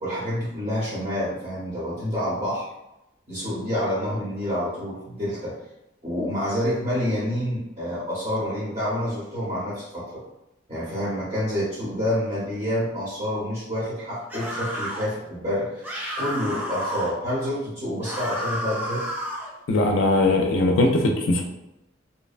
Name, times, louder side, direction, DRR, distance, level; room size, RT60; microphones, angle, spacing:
voice 1, 0.0-2.6 3.3-5.5 6.0-10.1 10.7-15.8 16.2-19.0, equal, 35° right, -9 dB, 0.8 m, -28 dB
sound 1, 14.3-15.1 15.8-17.1 18.0-19.5, equal, 10° right, 0.3 m, -31 dB
voice 2, 19.7-21.4, left 2 dB, 80° left, 1 dB, 0.4 m, -20 dB
2.7 x 2.1 x 2.4 m, 0.92 s
head